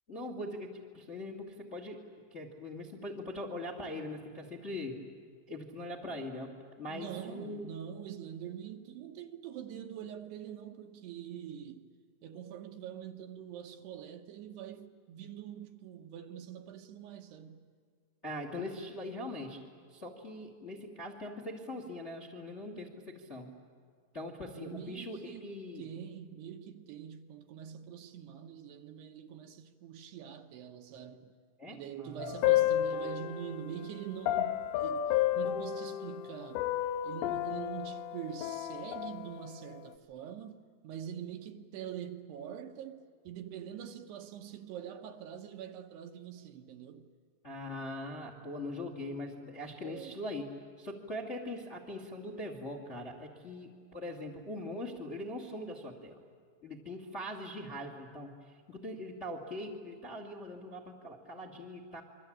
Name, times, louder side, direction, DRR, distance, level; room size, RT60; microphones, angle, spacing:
voice 1, 0.1-5.0 5.5-7.7 18.2-19.6 19.9-23.5 24.1-25.8 31.6-32.6 47.4-50.5 50.8-56.2 56.6-58.3 58.7-62.0, left 1 dB, 25° left, 1.4 m, -41 dB
voice 2, 6.9-11.9 12.2-17.6 24.5-31.3 31.7-36.6 37.0-47.1 49.8-50.2, right 9 dB, 70° right, 3.0 m, -44 dB
sound 1, 32.2-33.6 34.3-36.3 36.6-39.5, left 12 dB, 80° left, 3.2 m, -31 dB
28.0 x 23.5 x 8.8 m
omnidirectional pair, 5.2 m